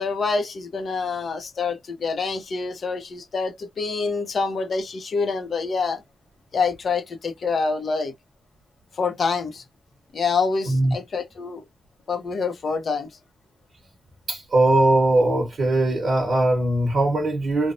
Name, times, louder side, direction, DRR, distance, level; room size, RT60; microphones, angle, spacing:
voice 1, 0.0-6.0 6.5-8.1 9.0-9.6 10.1-11.6 12.1-13.1, left 4 dB, 50° left, 0.5 m, -26 dB
voice 2, 14.3-17.7, right 2 dB, 45° right, 0.8 m, -20 dB
2.9 x 2.0 x 2.5 m
wide cardioid pair, 160°, 0 cm